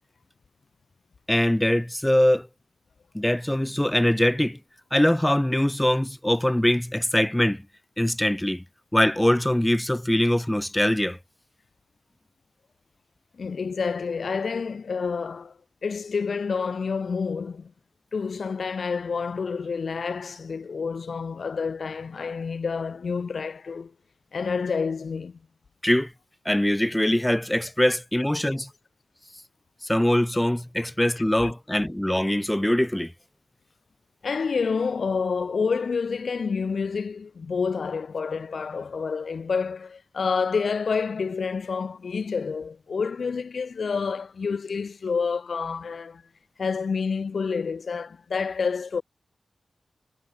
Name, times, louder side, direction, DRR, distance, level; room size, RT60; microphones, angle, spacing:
voice 1, 1.3-2.5 3.1-4.6 4.9-7.6 8.0-8.6 8.9-11.2 25.8-26.1 26.4-28.7 29.8-33.1, left 1 dB, 10° left, 1.1 m, -22 dB
voice 2, 13.4-15.5 15.8-17.7 18.1-23.9 24.3-25.4 31.4-31.5 34.2-46.2 46.6-49.0, left 5 dB, 75° left, 2.8 m, -28 dB
wide cardioid pair, 95°, 0 cm